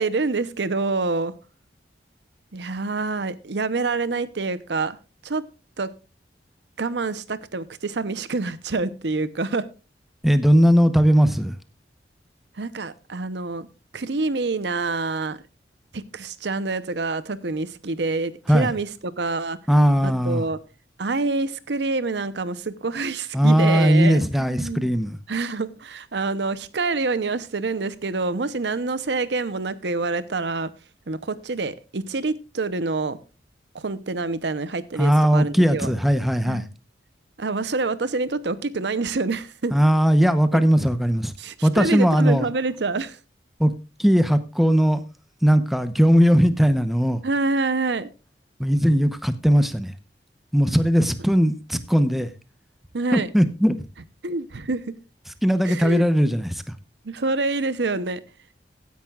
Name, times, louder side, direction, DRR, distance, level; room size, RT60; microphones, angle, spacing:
voice 1, 0.0-1.3 2.5-5.0 5.2-5.4 5.8-5.9 6.8-9.7 12.6-13.7 13.9-15.4 15.9-19.6 20.0-20.6 21.0-24.9 25.3-30.7 31.1-33.2 33.7-35.9 36.5-36.7 37.4-39.8 41.4-43.2 47.2-48.1 52.9-53.3 54.2-55.0 55.6-56.0 57.0-58.2, right 3 dB, 75° right, 0.8 m, -26 dB
voice 2, 10.2-11.6 18.5-18.7 19.7-20.5 23.3-25.2 35.0-36.7 39.7-41.3 41.6-42.5 43.6-43.7 44.0-45.0 45.4-47.2 48.6-49.9 50.5-52.3 53.1-53.8 55.4-56.7, equal, ahead, 0.9 m, -19 dB
15.5 x 10.5 x 2.4 m
head